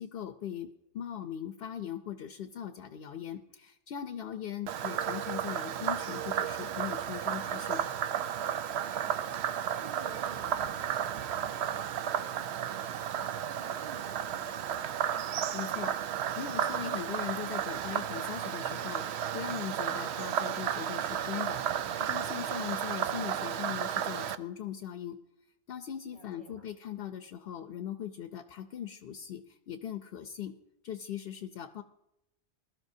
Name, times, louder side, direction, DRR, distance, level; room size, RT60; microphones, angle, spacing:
voice 1, 0.0-7.8 15.5-25.2 25.7-30.5 30.8-31.8, left 9 dB, 65° left, 9 dB, 0.8 m, -40 dB
Frog, 4.7-24.4, right 9 dB, 80° right, 0.9 m, -33 dB
voice 2, 9.7-12.8 13.1-14.8 26.1-26.6, right 3 dB, 50° right, 0 dB, 3.1 m, -53 dB
20.5 x 13.0 x 2.7 m, 0.87 s
omnidirectional pair, 1.1 m